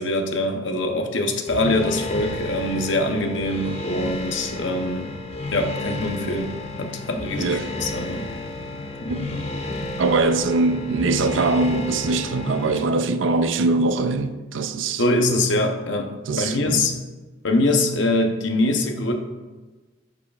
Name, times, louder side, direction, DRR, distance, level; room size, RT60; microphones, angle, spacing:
voice 1, 0.0-5.1 5.5-8.3 9.0-9.4 15.0-16.9 17.4-19.1, left 2 dB, 75° left, 0.8 m, -23 dB
sound 1, 1.5-12.8, left 2 dB, 35° left, 0.8 m, -32 dB
voice 2, 7.4-7.7 9.1-9.2 10.0-15.0 16.3-16.9, right 3 dB, 90° right, 0.5 m, -22 dB
13.0 x 4.9 x 2.4 m
head